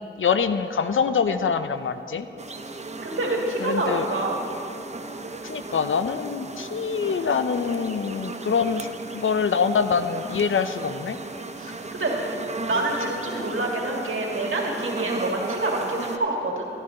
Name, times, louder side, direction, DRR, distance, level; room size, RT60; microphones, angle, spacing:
voice 1, 0.2-2.3 3.6-4.1 5.4-8.9 9.1-11.2, left 6 dB, 75° left, 10 dB, 0.5 m, -24 dB
sound 1, 2.4-16.2, right 3 dB, 35° right, 0.5 m, -35 dB
voice 2, 3.0-4.4 11.6-12.1 12.7-16.7, right 2 dB, 75° right, -2 dB, 1.9 m, -27 dB
12.5 x 10.5 x 3.7 m, 2.7 s
wide cardioid pair, 85°, 21 cm